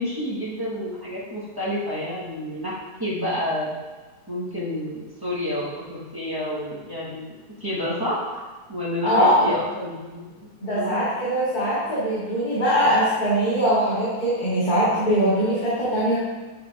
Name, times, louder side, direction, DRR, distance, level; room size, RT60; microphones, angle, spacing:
voice 1, 0.0-2.7 3.0-3.7 4.3-7.3 7.6-11.0, left 1 dB, 10° right, -8 dB, 1.1 m, -29 dB
voice 2, 9.0-9.6 10.6-16.2, equal, 30° left, -11 dB, 2.7 m, -21 dB
9.3 x 5.8 x 3.7 m, 1.3 s
omnidirectional pair, 3.7 m